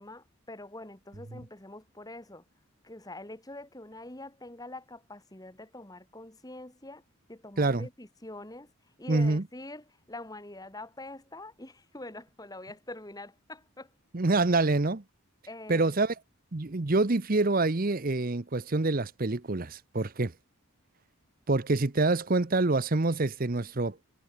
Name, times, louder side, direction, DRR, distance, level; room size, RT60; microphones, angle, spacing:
voice 1, 0.0-2.4 2.8-7.0 7.3-8.7 9.0-13.9 15.5-15.9, left 2 dB, 15° left, 1.9 m, -44 dB
voice 2, 7.6-7.9 9.1-9.4 14.1-15.0 15.7-16.1 16.5-20.3 21.5-24.0, right 2 dB, 40° right, 0.9 m, -26 dB
head